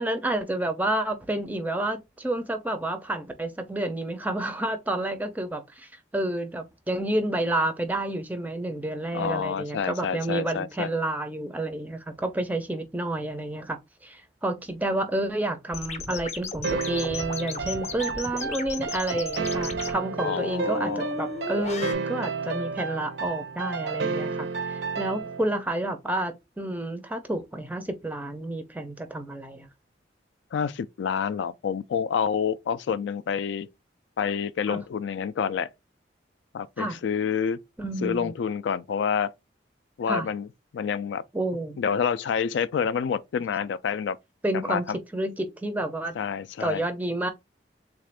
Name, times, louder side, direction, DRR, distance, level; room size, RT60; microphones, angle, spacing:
voice 1, 0.0-29.7 34.7-34.8 36.8-37.0 37.8-38.3 40.1-40.3 41.3-41.8 44.4-44.9 45.1-46.2 46.6-47.3, right 1 dB, 10° right, 0.4 m, -30 dB
voice 2, 9.1-10.9 20.2-21.1 30.5-33.7 34.2-35.7 36.5-37.6 38.0-39.3 40.0-40.5 40.7-41.2 41.8-44.2 44.6-45.0 46.2-46.8, left 7 dB, 80° left, 0.3 m, -28 dB
sound 1, 15.7-21.9, left 3 dB, 35° left, 0.6 m, -35 dB
sound 2, 16.6-25.5, right 4 dB, 70° right, 0.5 m, -31 dB
3.6 x 2.5 x 3.2 m
head